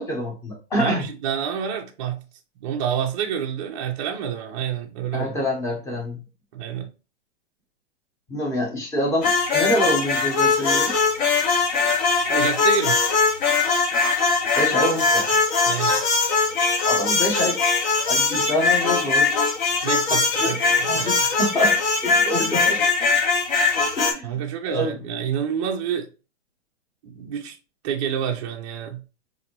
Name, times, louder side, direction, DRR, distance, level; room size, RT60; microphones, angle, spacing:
voice 1, 0.0-1.0 5.1-6.2 8.3-11.0 14.6-15.4 16.9-17.6 18.1-19.3 20.1-20.6 20.9-22.8 24.0-24.4 24.7-24.9, equal, 10° left, 0.8 m, -26 dB
voice 2, 0.8-2.2 2.6-5.4 6.5-6.9 12.3-13.1 15.6-16.0 19.8-21.2 24.2-26.1 27.0-27.6 27.8-29.0, right 8 dB, 30° right, 0.4 m, -28 dB
sound 1, 9.2-24.1, left 4 dB, 40° left, 0.7 m, -21 dB
3.9 x 2.6 x 2.9 m
hypercardioid pair, 145°, 35 cm